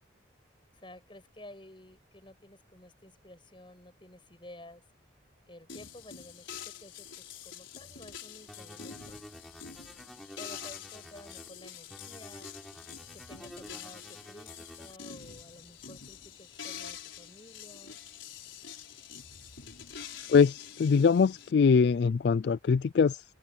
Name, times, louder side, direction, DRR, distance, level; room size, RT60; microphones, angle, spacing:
voice 1, 0.7-4.8 5.5-9.2 10.4-12.8 13.1-18.0, left 1 dB, 25° left, 6.0 m, -52 dB
sound 1, 5.7-21.5, left 8 dB, 75° left, 4.8 m, -46 dB
sound 2, 8.5-11.5 11.9-14.9, equal, ahead, 3.5 m, -50 dB
voice 2, 20.3-23.2, left 5 dB, 55° left, 0.3 m, -23 dB
open air
head